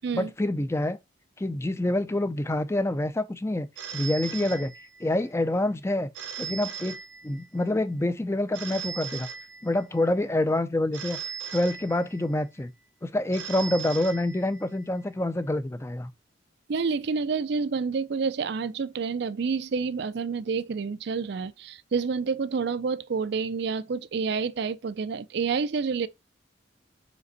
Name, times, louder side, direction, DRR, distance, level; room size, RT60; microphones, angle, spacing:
voice 1, 0.1-1.0 1.4-3.7 3.9-4.7 5.0-6.1 6.4-7.0 7.2-9.3 9.6-11.2 11.5-12.7 13.0-16.1, left 1 dB, 15° left, 0.4 m, -27 dB
Telephone, 3.8-5.3 6.1-7.6 8.5-10.0 10.9-12.4 13.3-14.8, right 6 dB, 85° right, 0.8 m, -38 dB
voice 2, 16.7-26.1, right 5 dB, 60° right, 0.4 m, -28 dB
5.2 x 5.2 x 4.0 m
head